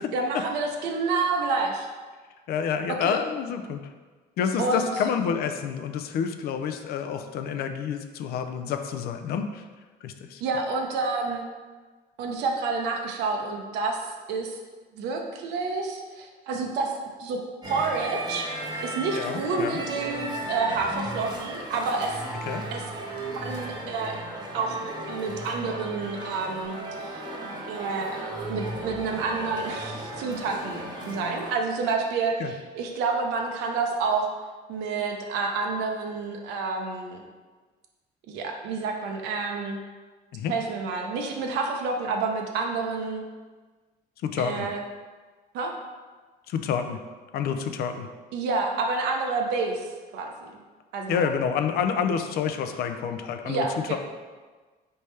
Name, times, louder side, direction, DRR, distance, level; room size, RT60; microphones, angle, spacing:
voice 1, 0.1-1.9 3.0-3.2 4.6-4.9 10.4-11.4 12.2-14.6 14.9-16.9 17.2-18.5 18.8-22.2 22.7-22.8 23.3-24.2 24.5-24.8 25.1-27.2 27.7-28.2 28.5-34.3 34.7-37.2 38.3-39.8 40.5-43.2 44.4-44.8 45.5-45.7 48.3-50.6 50.9-51.3 53.4-54.0, right 4 dB, 90° right, 2 dB, 0.6 m, -29 dB
voice 2, 2.5-3.9 4.4-9.6 10.0-10.4 19.1-19.8 22.5-22.6 32.4-32.5 40.3-40.5 44.2-44.7 46.5-47.0 47.3-48.1 51.1-53.6 53.9-54.0, left 7 dB, 65° left, 7 dB, 0.4 m, -28 dB
sound 1, 17.6-31.5, right 1 dB, 25° right, 0.9 m, -35 dB
4.2 x 3.3 x 3.2 m, 1.4 s
cardioid pair, 110°, 17 cm